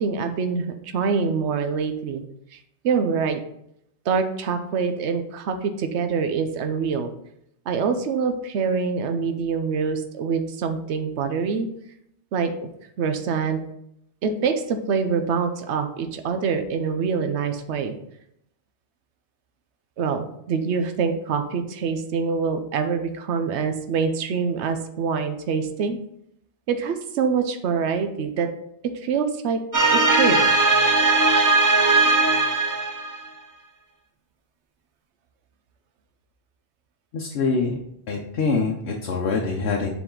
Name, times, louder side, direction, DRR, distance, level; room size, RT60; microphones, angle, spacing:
voice 1, 0.0-2.2 2.5-3.4 4.1-7.1 7.7-11.7 12.3-12.7 13.0-13.6 14.2-18.0 20.0-26.0 26.7-28.5 28.8-29.6 29.9-30.4, right 5 dB, 75° right, 7 dB, 1.0 m, -25 dB
sound 1, 29.7-33.3, right 3 dB, 25° right, 0.5 m, -19 dB
voice 2, 37.1-37.7 38.1-39.9, left 4 dB, 65° left, 0 dB, 1.0 m, -24 dB
7.1 x 4.1 x 3.8 m, 0.76 s
omnidirectional pair, 1.2 m